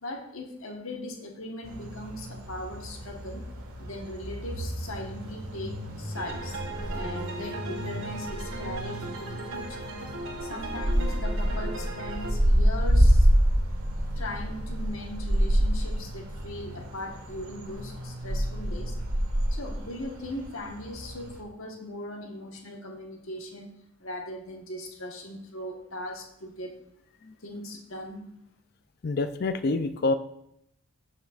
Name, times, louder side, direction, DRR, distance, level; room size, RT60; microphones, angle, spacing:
voice 1, 0.0-3.4 3.8-6.6 6.9-9.8 10.4-13.3 14.2-19.0 19.5-23.7 24.0-26.7 27.4-28.3, left 1 dB, 65° left, 2 dB, 1.3 m, -39 dB
sound 1, 1.6-21.4, equal, 80° right, 1.5 m, -28 dB
sound 2, 6.1-12.3, right 2 dB, 65° right, 1.1 m, -38 dB
voice 2, 29.0-30.1, left 3 dB, 45° left, 10 dB, 0.4 m, -27 dB
14.0 x 6.5 x 2.5 m, 0.75 s
head